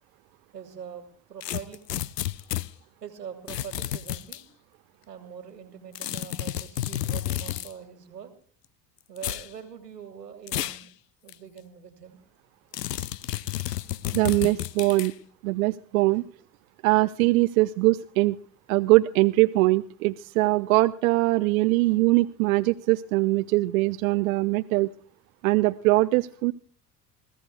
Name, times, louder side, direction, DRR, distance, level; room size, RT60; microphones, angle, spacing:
voice 1, 0.5-1.8 3.0-4.4 5.1-8.3 9.1-10.9 11.2-12.2, right 8 dB, 80° right, 9 dB, 2.0 m, -43 dB
sound 1, 1.4-2.7 3.5-4.4 5.9-7.7 9.2-9.5 10.5-10.8 11.3-11.4 12.7-15.1, left 13 dB, 80° left, 0.6 m, -31 dB
voice 2, 14.1-15.1 15.4-16.2 16.8-18.4 18.7-24.9 25.4-26.5, right 20 dB, 60° right, 12 dB, 0.6 m, -22 dB
28.0 x 15.5 x 2.2 m, 0.43 s
figure-of-eight pair, 60°, 48 cm